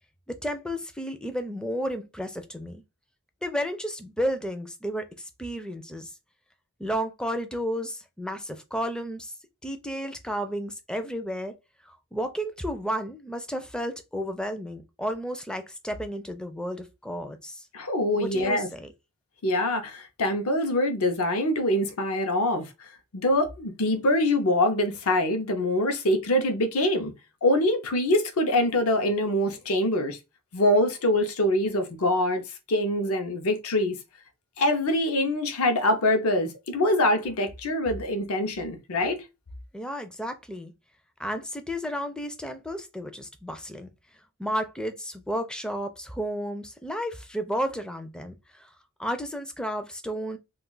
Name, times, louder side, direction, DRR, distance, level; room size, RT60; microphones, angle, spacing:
voice 1, 0.3-2.8 3.4-6.1 6.8-9.3 9.6-11.6 11.8-17.7 18.2-18.9 39.7-40.7 41.2-43.9 44.4-48.7 49.0-50.4, equal, 5° left, 0.4 m, -32 dB
voice 2, 17.7-18.7 19.4-27.1 27.4-30.2 30.5-32.4 32.7-34.0 34.6-39.2, left 1 dB, 65° left, 0.6 m, -24 dB
2.4 x 2.3 x 3.8 m
head